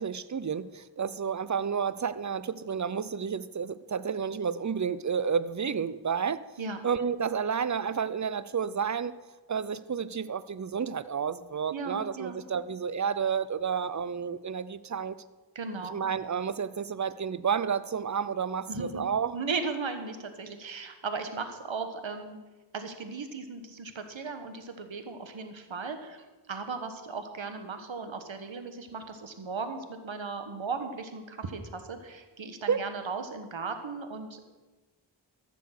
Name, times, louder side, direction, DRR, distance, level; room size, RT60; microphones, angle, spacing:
voice 1, 0.0-6.4 6.8-9.2 9.5-15.2 15.8-19.4 32.7-32.8, right 6 dB, 40° right, 15 dB, 0.6 m, -31 dB
voice 2, 11.7-12.4 15.5-16.0 18.7-22.4 22.7-34.4, right 4 dB, 80° right, 7 dB, 1.4 m, -37 dB
15.0 x 6.9 x 6.6 m, 1.2 s
cardioid pair, 45°, 45 cm